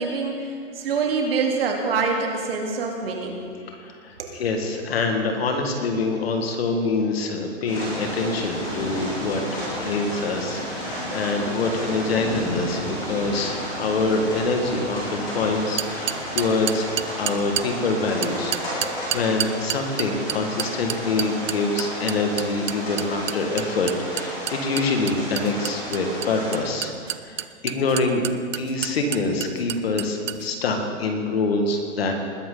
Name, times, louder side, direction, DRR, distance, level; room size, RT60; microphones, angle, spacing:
voice 1, 0.0-3.4 4.2-4.4, right 4 dB, 50° right, 1 dB, 2.2 m, -25 dB
voice 2, 3.7-16.9 17.2-26.9 27.2-28.3 28.5-32.1, left 3 dB, 50° left, 4 dB, 1.9 m, -25 dB
sound 1, 7.7-26.6, equal, 10° left, 3.2 m, -32 dB
sound 2, 15.8-17.7 18.2-30.5, right 11 dB, 75° right, 0.7 m, -29 dB
20.0 x 11.0 x 3.9 m, 2.3 s
hypercardioid pair, 170°, 38 cm